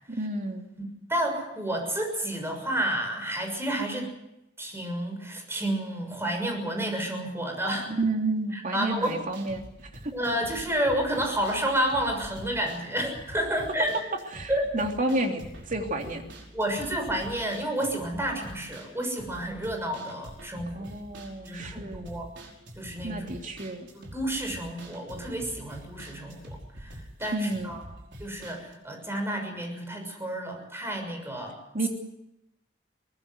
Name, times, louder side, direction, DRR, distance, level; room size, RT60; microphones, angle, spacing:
voice 1, 0.1-0.7 7.9-9.6 10.0-10.1 14.3-16.2 20.7-22.1 23.0-23.9 27.3-27.8 31.7-31.9, right 2 dB, 45° right, 3 dB, 3.0 m, -30 dB
voice 2, 1.1-4.1 4.6-7.9 8.5-9.1 10.1-14.0 14.5-14.7 16.5-20.9 21.4-22.3 22.8-23.3 23.9-27.8 28.2-31.6, right 1 dB, 15° right, 4 dB, 6.5 m, -30 dB
sound 1, 8.9-28.7, right 1 dB, 70° right, 5.2 m, -46 dB
23.0 x 19.5 x 7.9 m, 0.86 s
head